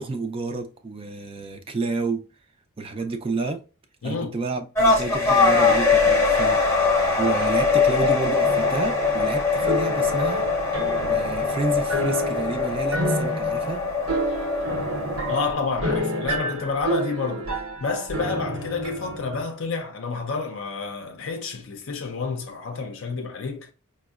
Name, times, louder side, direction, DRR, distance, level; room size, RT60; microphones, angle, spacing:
voice 1, 0.0-2.2 2.8-3.6 4.0-6.6 7.2-10.5 11.1-13.8, right 3 dB, 25° right, 0.4 m, -30 dB
voice 2, 4.0-4.4 15.3-23.7, left 4 dB, 60° left, 0.5 m, -29 dB
sound 1, 4.7-15.5, left 4 dB, 10° left, 0.7 m, -22 dB
sound 2, 8.4-19.4, right 1 dB, 70° right, 0.9 m, -30 dB
5.1 x 2.0 x 2.3 m
head